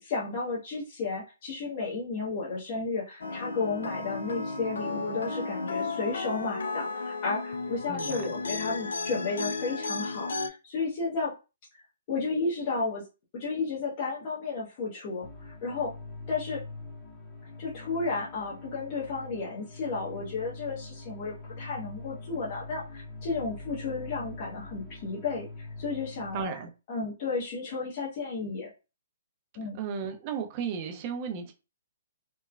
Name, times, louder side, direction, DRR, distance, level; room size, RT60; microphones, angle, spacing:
voice 1, 0.0-11.3 12.1-13.0 13.3-15.9 16.3-16.6 17.6-26.5 26.9-28.7 29.5-29.8, left 4 dB, 35° left, 0.9 m, -33 dB
sound 1, 3.2-10.5, left 3 dB, 85° left, 0.4 m, -34 dB
voice 2, 7.9-8.3 26.3-26.7 29.7-31.5, right 6 dB, 30° right, 0.5 m, -34 dB
sound 2, 15.2-26.4, left 3 dB, 10° left, 0.8 m, -43 dB
3.0 x 2.1 x 2.4 m
hypercardioid pair, 155°, 0 cm